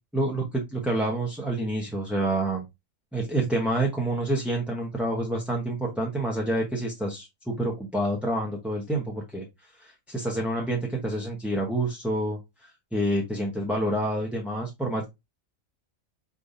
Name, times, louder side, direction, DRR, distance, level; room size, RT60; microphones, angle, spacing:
voice 1, 0.1-2.7 3.1-9.4 9.8-15.0, right 1 dB, ahead, -2 dB, 0.9 m, -28 dB
5.3 x 3.4 x 2.6 m, 0.20 s
omnidirectional pair, 1.4 m